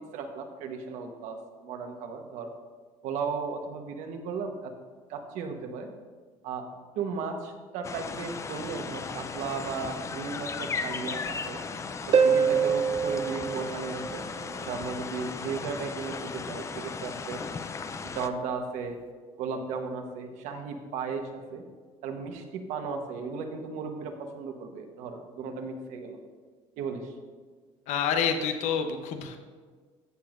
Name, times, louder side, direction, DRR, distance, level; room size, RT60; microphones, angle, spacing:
voice 1, 0.0-1.4 1.6-2.5 3.0-4.7 5.1-5.9 6.4-6.6 6.9-11.6 12.1-14.2 14.6-17.4 18.0-19.0 19.4-21.6 22.0-26.2 26.8-27.1, right 5 dB, 75° right, 5 dB, 1.1 m, -35 dB
sound 1, 7.8-18.3, left 5 dB, 25° left, 0.4 m, -36 dB
Harp, 12.1-14.6 18.1-18.2, right 6 dB, 45° right, 0.5 m, -25 dB
voice 2, 27.9-29.4, left 7 dB, 70° left, 6 dB, 0.8 m, -28 dB
14.0 x 7.0 x 2.5 m, 1.5 s
cardioid pair, 120°, 12 cm